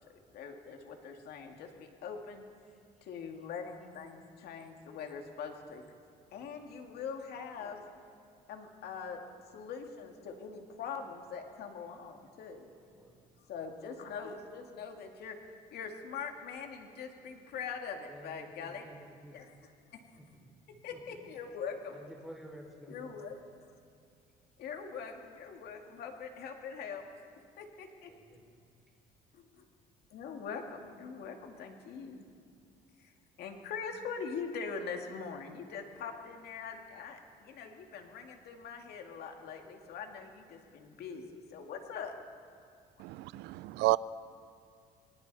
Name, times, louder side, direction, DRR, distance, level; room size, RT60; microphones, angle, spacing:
voice 1, 0.0-2.4 3.0-5.8 6.3-7.8 8.5-9.2 9.5-12.7 13.5-15.4 15.7-18.8 19.3-19.5 19.9-20.0 20.8-22.0 22.9-23.4 24.6-27.0 27.6-28.1 29.3-29.6 30.1-32.2 33.0-33.1 33.4-42.1, left 6 dB, 70° left, 2.2 m, -43 dB
voice 2, 6.1-6.5 12.7-13.2 18.1-19.4 20.0-20.6 20.9-21.2 21.9-23.1 28.1-28.4, equal, ahead, 5.5 m, -52 dB
voice 3, 43.0-44.0, right 21 dB, 90° right, 0.5 m, -30 dB
25.5 x 25.5 x 4.2 m
cardioid pair, 110°, 17 cm